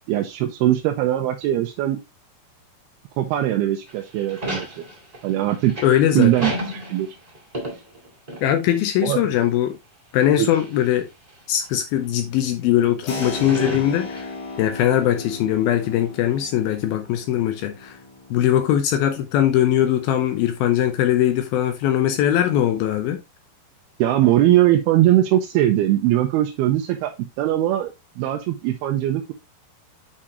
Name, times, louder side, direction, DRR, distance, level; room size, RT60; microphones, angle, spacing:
voice 1, 0.1-2.0 3.2-4.8 5.2-5.7 6.1-7.1 9.0-9.2 10.4-10.5 24.0-27.1 27.4-29.3, right 13 dB, 85° right, 2.6 m, -20 dB
sound 1, 3.9-8.7 9.0-9.1 10.1-10.9 11.6-11.7 13.1-14.6, equal, 40° right, 0.5 m, -32 dB
voice 2, 5.8-6.3 8.4-9.8 10.1-11.1 11.5-14.3 14.6-18.0 18.3-23.2, left 11 dB, 75° left, 2.4 m, -20 dB
Keyboard (musical), 13.1-21.4, left 2 dB, 50° left, 3.0 m, -37 dB
8.6 x 5.0 x 2.9 m
omnidirectional pair, 4.6 m